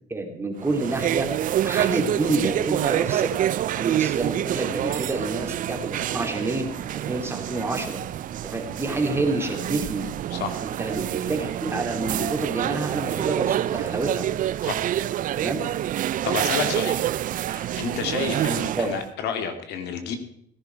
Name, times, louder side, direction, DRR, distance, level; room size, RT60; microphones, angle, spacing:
voice 1, 0.1-1.3 1.6-3.3 3.7-6.7 6.9-8.0 8.4-10.1 10.6-14.3 15.3-15.6 18.7-18.9, right 2 dB, 15° right, 2 dB, 3.0 m, -28 dB
sound 1, 0.6-19.1, right 12 dB, 50° right, 0.5 m, -27 dB
voice 2, 16.2-17.0 17.5-20.2, left 6 dB, 80° left, 7 dB, 2.1 m, -30 dB
18.0 x 11.0 x 4.6 m, 0.69 s
cardioid pair, 110°, 17 cm